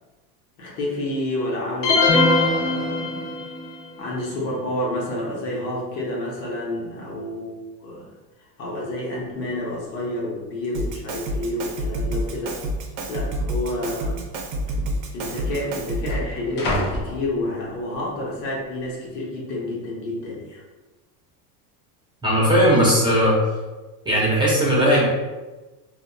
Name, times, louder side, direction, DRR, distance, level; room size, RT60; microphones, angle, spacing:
voice 1, 0.6-3.4 4.0-8.1 8.6-12.6 13.1-14.3 15.1-20.6, left 1 dB, 85° left, -4 dB, 1.0 m, -29 dB
sound 1, 1.8-3.6, left 2 dB, 45° left, 1.0 m, -20 dB
sound 2, 9.2-9.3 9.5-9.9 10.6-10.7 11.5-12.0 12.3-12.4 13.2-13.4 14.4-14.5 14.7-18.0 18.4-18.9, left 1 dB, 25° left, 0.3 m, -32 dB
Drum kit, 10.7-16.4, right 1 dB, 55° right, 0.6 m, -28 dB
voice 2, 22.2-23.4 24.0-25.1, equal, 10° right, -7 dB, 0.6 m, -18 dB
2.7 x 2.3 x 2.2 m, 1.2 s
supercardioid pair, 120°, 48 cm